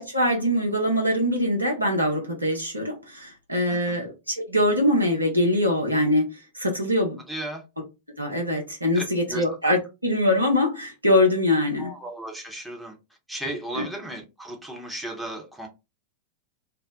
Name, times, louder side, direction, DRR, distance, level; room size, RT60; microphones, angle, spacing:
voice 1, 0.0-6.3 6.5-7.2 8.2-11.9 13.8-13.9, left 1 dB, 85° right, 0.9 m, -23 dB
voice 2, 7.3-7.6 8.9-9.4 11.8-13.0 13.3-15.7, right 1 dB, 5° right, 0.8 m, -35 dB
2.6 x 2.0 x 3.5 m
figure-of-eight pair, 90°, 0 cm